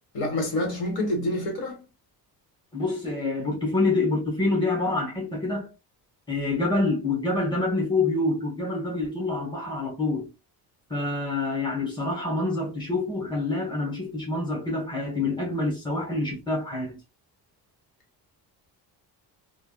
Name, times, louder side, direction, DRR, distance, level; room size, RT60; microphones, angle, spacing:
voice 1, 0.1-1.8, left 1 dB, 70° left, 1.6 m, -27 dB
voice 2, 2.7-5.7 6.3-10.3 10.9-17.0, left 2 dB, 10° left, 1.3 m, -27 dB
3.4 x 2.5 x 2.3 m
cardioid pair, 160°, 39 cm